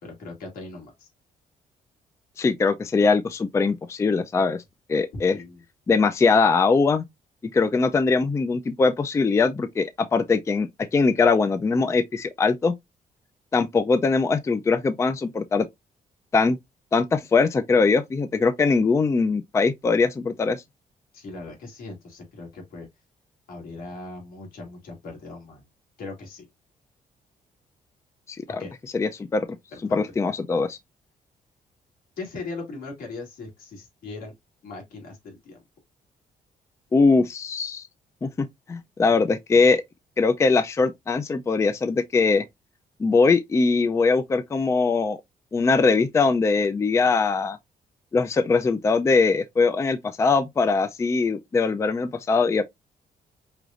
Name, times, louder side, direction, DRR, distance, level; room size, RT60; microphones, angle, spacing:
voice 1, 0.0-1.1 5.1-5.6 21.1-22.9 23.5-25.6 26.0-26.5 28.6-28.7 29.7-30.0 32.2-34.3 34.6-35.6, left 3 dB, 85° left, 2.5 m, -39 dB
voice 2, 2.4-4.6 4.9-5.4 5.9-7.0 7.5-12.7 13.5-15.7 16.3-16.6 16.9-20.6 28.3-28.6 28.9-29.5 29.9-30.8 36.9-37.9 38.2-39.8 40.2-42.4 43.0-45.2 45.5-47.6 48.1-52.6, left 4 dB, 20° left, 0.3 m, -21 dB
4.8 x 3.0 x 2.5 m
cardioid pair, 130°, 15 cm